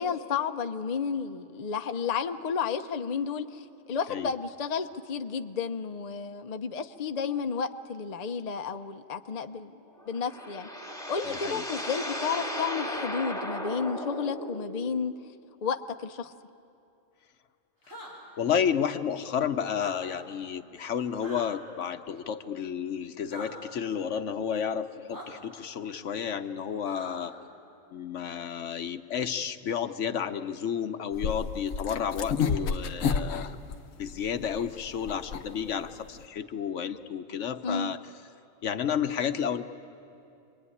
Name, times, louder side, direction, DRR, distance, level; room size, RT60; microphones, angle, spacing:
voice 1, 0.0-9.7 10.1-10.7 11.1-15.2 15.6-16.3 37.6-37.9, left 6 dB, 40° left, 7 dB, 0.7 m, -32 dB
sound 1, 9.9-15.1, equal, 5° left, 1.5 m, -36 dB
voice 2, 11.3-11.6 18.4-27.3 27.9-33.6 34.0-38.0 38.6-39.6, left 8 dB, 70° left, 9 dB, 1.1 m, -31 dB
sound 2, 17.8-18.1 19.7-19.9 21.2-21.5 23.3-23.5 25.1-25.3 26.8-27.3, equal, 85° right, 6.0 m, -42 dB
sound 3, 31.1-36.3, left 6 dB, 85° left, 1.3 m, -31 dB
27.0 x 21.5 x 9.8 m, 2.7 s
omnidirectional pair, 1.3 m